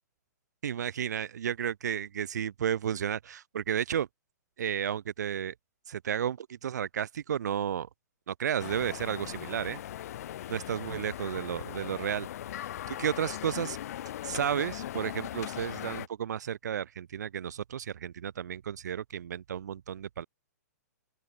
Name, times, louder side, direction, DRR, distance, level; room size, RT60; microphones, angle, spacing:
voice 1, 0.6-4.1 4.6-5.5 5.9-7.9 8.3-9.8 10.5-12.3 12.6-13.8 14.2-20.3, right 9 dB, 75° right, 1.0 m, -32 dB
sound 1, 8.6-16.1, left 12 dB, 60° left, 1.6 m, -39 dB
open air
hypercardioid pair, 130°, 9 cm